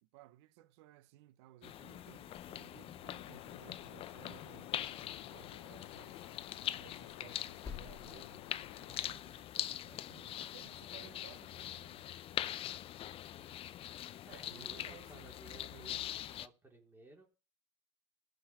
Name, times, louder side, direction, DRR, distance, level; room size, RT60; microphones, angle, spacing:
voice 1, 0.0-4.8 5.2-6.3 6.8-12.1 14.3-16.1, right 15 dB, 75° right, 0.9 m, -59 dB
sound 1, 1.6-16.5, left 12 dB, 40° left, 0.6 m, -43 dB
sound 2, 3.0-9.1, left 15 dB, 85° left, 0.7 m, -54 dB
sound 3, 3.3-3.4 3.7-4.9 5.1-5.2 5.6-5.8 6.0-6.1 6.5-9.1, left 7 dB, 25° left, 2.0 m, -53 dB
voice 2, 14.2-17.3, right 2 dB, 15° right, 4.1 m, -58 dB
13.5 x 5.3 x 8.7 m
supercardioid pair, 100°, 14 cm